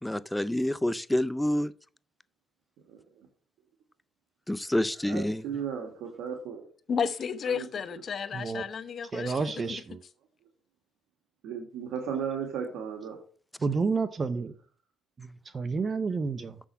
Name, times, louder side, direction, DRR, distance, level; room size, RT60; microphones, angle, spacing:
voice 1, 0.0-1.7 4.5-5.4, left 1 dB, 10° left, 0.4 m, -28 dB
voice 2, 5.0-6.6 7.4-7.7 11.4-13.2, right 7 dB, 90° right, 1.6 m, -35 dB
voice 3, 6.9-9.8, left 6 dB, 50° left, 0.8 m, -32 dB
voice 4, 9.1-10.0 13.6-14.5 15.2-15.3 15.5-16.5, right 4 dB, 40° right, 0.7 m, -30 dB
7.0 x 6.2 x 5.5 m
cardioid pair, 90°, 0 cm